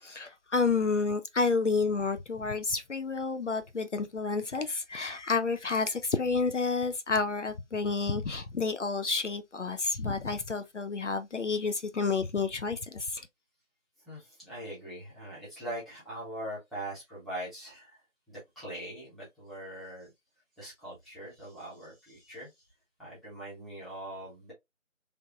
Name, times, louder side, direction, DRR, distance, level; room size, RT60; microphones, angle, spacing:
voice 1, 0.0-13.2, left 4 dB, 65° left, 0.5 m, -30 dB
voice 2, 14.1-18.0 18.3-20.1 20.6-22.7 23.0-24.5, right 1 dB, ahead, 0.7 m, -42 dB
3.4 x 2.9 x 2.3 m
figure-of-eight pair, 170°, 40 cm